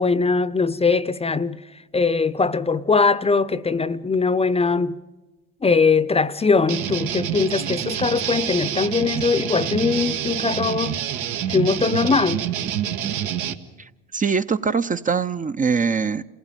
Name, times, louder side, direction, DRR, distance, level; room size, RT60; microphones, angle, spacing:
voice 1, 0.0-1.6 1.9-5.0 5.6-11.0 11.5-12.4, left 4 dB, 20° left, 0.7 m, -21 dB
sound 1, 6.7-13.5, right 10 dB, 75° right, 1.4 m, -27 dB
voice 2, 13.8-16.2, right 5 dB, 25° right, 0.7 m, -23 dB
27.0 x 16.0 x 9.0 m
supercardioid pair, 80°, 30 cm